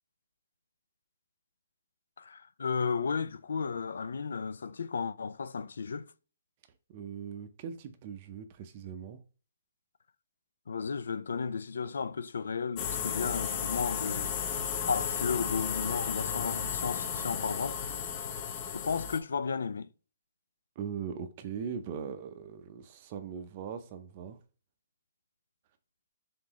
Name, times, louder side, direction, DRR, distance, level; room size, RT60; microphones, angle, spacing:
voice 1, 2.2-6.1 10.7-14.3 14.9-17.8 18.7-19.9, left 5 dB, 80° left, 0.3 m, -34 dB
voice 2, 6.9-9.2 20.8-24.4, right 7 dB, 30° right, 0.5 m, -40 dB
sound 1, 12.8-19.2, left 7 dB, 25° left, 0.6 m, -34 dB
3.8 x 3.8 x 3.0 m
hypercardioid pair, 165°, 0 cm